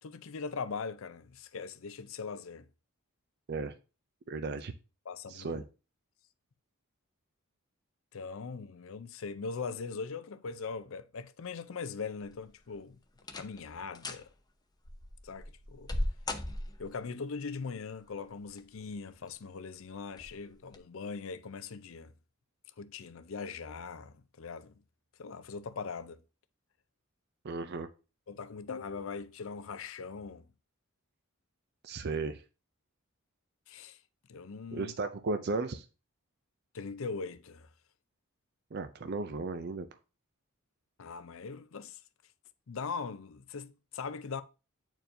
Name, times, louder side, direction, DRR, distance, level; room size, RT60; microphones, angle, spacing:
voice 1, 0.0-2.7 5.1-5.6 8.1-13.0 13.3-14.3 15.2-15.9 16.8-22.1 22.8-24.8 25.2-26.2 28.3-30.5 33.7-34.0 34.3-34.9 36.7-37.7 41.0-42.0 42.7-44.4, left 5 dB, 65° left, 0.5 m, -41 dB
voice 2, 4.3-4.7 5.3-5.6 27.4-27.9 31.8-32.4 34.7-35.9 38.7-39.9, right 3 dB, 50° right, 0.5 m, -35 dB
sound 1, 12.3-12.7 13.2-13.6 13.9-14.3 14.8-17.0 18.2-18.8 19.3-19.4 20.1-20.3 20.7-20.8, left 1 dB, 20° left, 0.6 m, -37 dB
8.9 x 4.5 x 2.7 m
head